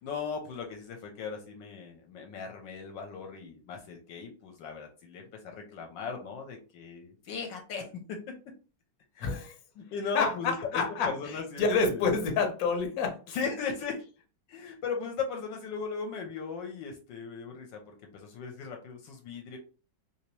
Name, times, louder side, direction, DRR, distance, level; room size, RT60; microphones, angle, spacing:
voice 1, 0.0-8.2 9.1-9.3 9.8-12.1 13.3-14.0 14.5-19.6, left 5 dB, 75° left, 3 dB, 1.3 m, -37 dB
voice 2, 9.2-9.5 10.1-10.3 10.7-11.1 11.6-13.4 14.6-14.7, left 4 dB, 60° left, 4 dB, 1.1 m, -28 dB
3.3 x 2.9 x 3.0 m, 0.36 s
omnidirectional pair, 2.1 m